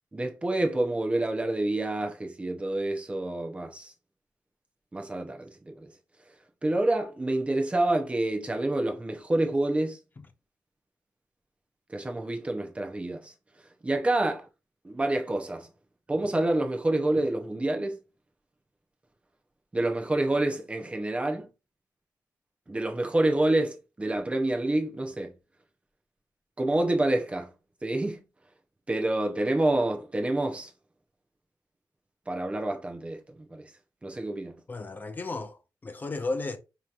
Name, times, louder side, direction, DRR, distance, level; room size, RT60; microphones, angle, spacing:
voice 1, 0.1-3.9 4.9-5.9 6.6-10.0 11.9-13.3 13.8-14.5 14.8-15.7 16.1-18.0 19.7-21.5 22.7-25.3 26.6-27.5 27.8-28.2 28.9-30.7 32.3-33.7 34.0-34.5, right 2 dB, 15° right, 0.7 m, -28 dB
voice 2, 34.7-36.6, left 3 dB, 25° left, 0.5 m, -34 dB
4.9 x 2.9 x 2.4 m
wide cardioid pair, 145°, 7 cm